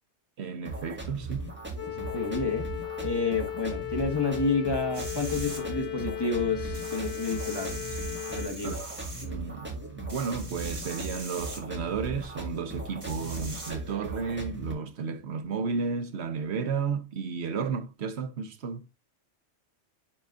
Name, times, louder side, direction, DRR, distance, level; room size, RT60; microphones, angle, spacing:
voice 1, 0.4-1.5 8.6-18.9, right 5 dB, 65° right, 1.2 m, -33 dB
sound 1, 0.6-14.7, right 2 dB, 10° right, 1.8 m, -38 dB
sound 2, 1.8-8.5, left 11 dB, 60° left, 2.8 m, -37 dB
voice 2, 1.9-2.7 3.0-8.0 8.3-8.8, left 4 dB, 20° left, 1.3 m, -30 dB
sound 3, 4.9-5.6 6.7-9.3 10.1-11.6 13.0-13.7, right 1 dB, 50° right, 2.6 m, -42 dB
10.0 x 4.0 x 2.5 m
omnidirectional pair, 1.2 m